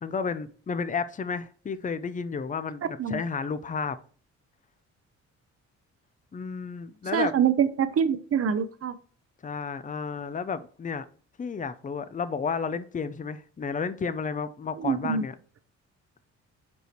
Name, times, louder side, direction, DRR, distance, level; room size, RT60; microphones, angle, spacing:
voice 1, 0.0-4.0 6.3-7.3 9.4-11.1 11.4-15.3, left 5 dB, 25° left, 0.7 m, -32 dB
voice 2, 7.1-8.9 14.8-15.2, right 7 dB, 50° right, 0.9 m, -25 dB
5.4 x 4.8 x 4.5 m
cardioid pair, 90°, 30 cm